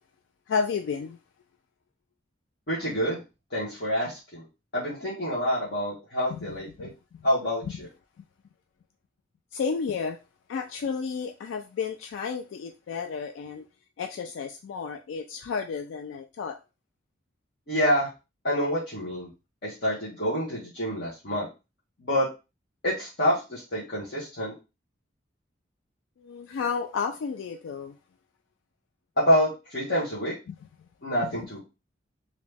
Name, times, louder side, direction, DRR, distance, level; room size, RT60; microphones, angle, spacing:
voice 1, 0.5-1.2 6.3-6.4 6.8-7.2 7.6-7.7 9.5-10.2 10.5-13.7 14.0-16.6 26.2-28.0 30.5-30.6, left 5 dB, 75° left, 0.3 m, -32 dB
voice 2, 2.7-3.2 3.5-4.4 4.7-6.9 7.2-7.9 17.7-18.1 18.4-19.3 19.6-21.5 22.1-22.3 22.8-24.5 29.2-30.3 31.0-31.6, equal, 55° left, 1.2 m, -27 dB
3.0 x 2.7 x 3.3 m
head